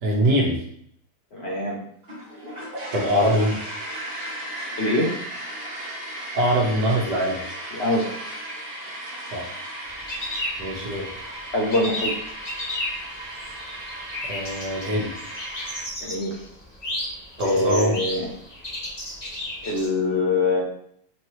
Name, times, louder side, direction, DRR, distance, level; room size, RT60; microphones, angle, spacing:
voice 1, 0.0-0.6 2.9-3.6 6.3-7.4 9.3-9.6 10.6-11.1 14.3-15.1 17.4-18.0, equal, 80° right, -3 dB, 1.5 m, -23 dB
voice 2, 1.3-1.8 4.8-5.1 7.7-8.1 11.5-12.2 16.0-16.5 17.4-18.3 19.6-20.6, left 2 dB, 55° left, -2 dB, 0.7 m, -24 dB
sound 1, 2.0-15.8, right 1 dB, 40° right, 1.2 m, -36 dB
sound 2, 9.8-11.2 11.5-19.9, left 1 dB, 30° left, 1.0 m, -33 dB
4.4 x 2.8 x 3.0 m, 0.67 s
omnidirectional pair, 1.8 m